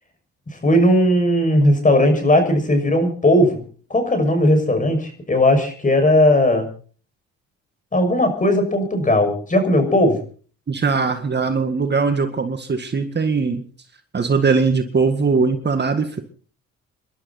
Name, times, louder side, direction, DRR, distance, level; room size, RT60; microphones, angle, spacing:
voice 1, 0.6-3.6 3.9-6.7 7.9-10.2, left 1 dB, 25° left, 6 dB, 6.4 m, -17 dB
voice 2, 10.7-13.6 14.1-16.2, right 4 dB, 35° right, 7 dB, 2.0 m, -20 dB
27.5 x 12.0 x 4.2 m, 0.43 s
cardioid pair, 90°, 30 cm